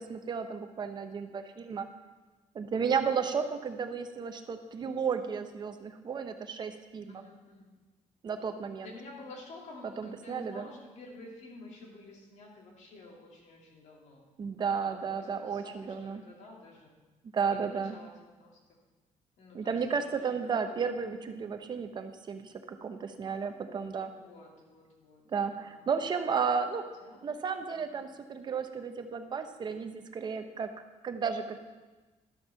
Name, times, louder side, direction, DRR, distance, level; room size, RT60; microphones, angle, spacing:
voice 1, 0.0-1.9 2.5-7.2 8.2-8.9 10.0-10.7 14.4-16.2 17.3-18.0 19.5-24.1 25.3-26.8 27.2-30.7 31.0-31.7, right 6 dB, 35° right, 8 dB, 0.8 m, -33 dB
voice 2, 7.1-7.7 8.8-14.3 14.5-16.9 17.5-18.6 19.4-20.8 24.0-25.9 27.0-27.4 27.7-28.0, left 2 dB, 65° left, -1 dB, 2.7 m, -51 dB
12.5 x 7.2 x 5.8 m, 1.2 s
cardioid pair, 170°, 13 cm